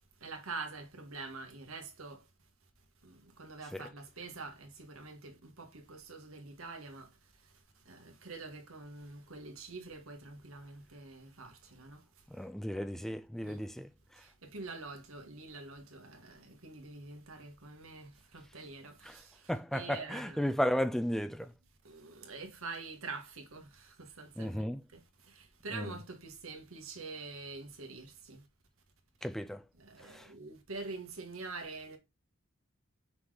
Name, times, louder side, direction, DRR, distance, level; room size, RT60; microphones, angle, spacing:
voice 1, 0.2-2.2 3.0-7.1 7.9-12.0 13.4-13.6 14.2-19.4 19.7-20.5 21.8-25.0 25.3-28.4 29.8-32.0, right 3 dB, 80° right, 1.7 m, -46 dB
voice 2, 12.4-13.9 19.5-21.5 24.4-24.8 25.7-25.9 29.2-29.6 30.1-30.3, equal, ahead, 0.4 m, -34 dB
5.9 x 3.9 x 4.9 m
head